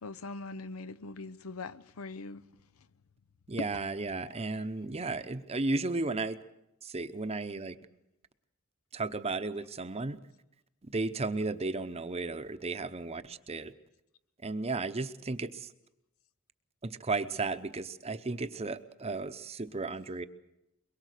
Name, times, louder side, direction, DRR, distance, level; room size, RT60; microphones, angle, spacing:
voice 1, 0.0-2.4 3.6-3.7 4.3-4.4, left 3 dB, 85° left, 0.7 m, -41 dB
voice 2, 3.5-6.4 6.8-7.7 8.9-10.2 10.9-13.7 14.4-15.7 16.8-20.2, right 3 dB, 30° right, 0.8 m, -34 dB
23.0 x 22.0 x 6.6 m
head